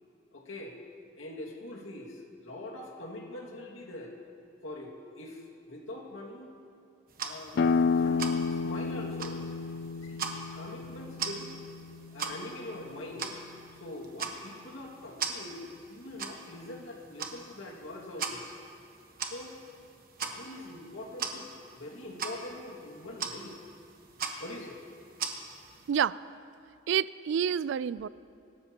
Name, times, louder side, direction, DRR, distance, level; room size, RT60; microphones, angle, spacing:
voice 1, 0.3-0.8 1.2-4.1 4.6-6.5 7.2-8.3 8.6-9.4 10.0-11.5 12.1-13.4 13.8-18.5 19.2-19.6 20.2-23.6 24.4-24.8, left 1 dB, 85° left, -1 dB, 2.1 m, -43 dB
sound 1, 7.1-25.9, right 5 dB, 50° right, 1.2 m, -41 dB
sound 2, 7.5-12.9, left 4 dB, 55° left, 0.4 m, -31 dB
voice 2, 26.9-28.1, right 8 dB, 65° right, 19 dB, 0.3 m, -28 dB
24.5 x 13.0 x 2.9 m, 2.6 s
head